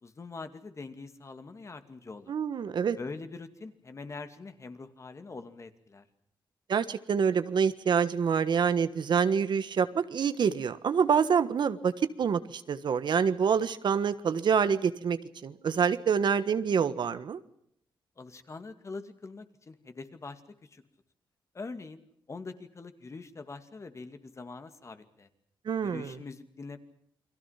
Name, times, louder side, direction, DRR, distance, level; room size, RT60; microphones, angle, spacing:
voice 1, 0.0-2.3 3.0-6.0 18.2-20.4 20.7-20.8 21.5-22.0 22.3-25.3 25.8-26.8, left 3 dB, 35° left, 8 dB, 2.4 m, -43 dB
voice 2, 2.3-3.0 6.7-11.9 12.2-17.4 25.6-26.2, right 6 dB, 60° right, 12 dB, 1.4 m, -26 dB
29.5 x 22.5 x 5.8 m, 0.70 s
cardioid pair, 105°, 9 cm